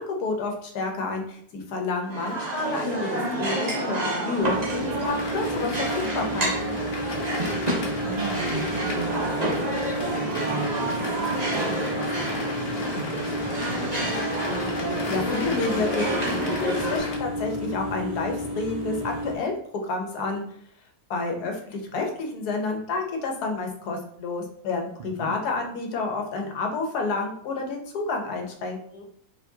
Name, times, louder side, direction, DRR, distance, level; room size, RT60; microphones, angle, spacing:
voice 1, 0.0-3.1 3.4-5.9 6.1-6.8 15.1-19.5 19.8-20.4 21.1-29.1, left 3 dB, 85° left, 3 dB, 1.4 m, -29 dB
sound 1, 2.0-17.0, right 2 dB, 30° right, 0.9 m, -29 dB
sound 2, 4.4-19.3, equal, 55° right, 1.6 m, -32 dB
sound 3, 5.1-17.2, left 4 dB, 65° left, 1.3 m, -36 dB
voice 2, 7.9-12.7 12.9-14.2 25.2-25.3, right 3 dB, 75° right, 1 dB, 0.4 m, -37 dB
4.6 x 4.2 x 2.7 m, 0.64 s
omnidirectional pair, 1.6 m